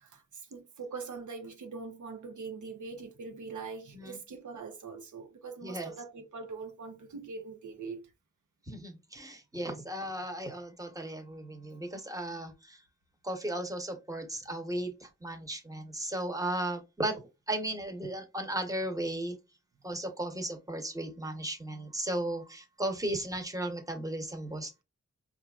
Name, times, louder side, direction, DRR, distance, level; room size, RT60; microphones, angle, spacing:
voice 1, 0.0-8.1, right 4 dB, 85° right, 0.7 m, -42 dB
voice 2, 8.7-12.8 13.2-17.2 17.5-19.3 19.8-24.8, right 1 dB, 10° right, 1.0 m, -35 dB
4.4 x 2.4 x 2.4 m
cardioid pair, 60°, 29 cm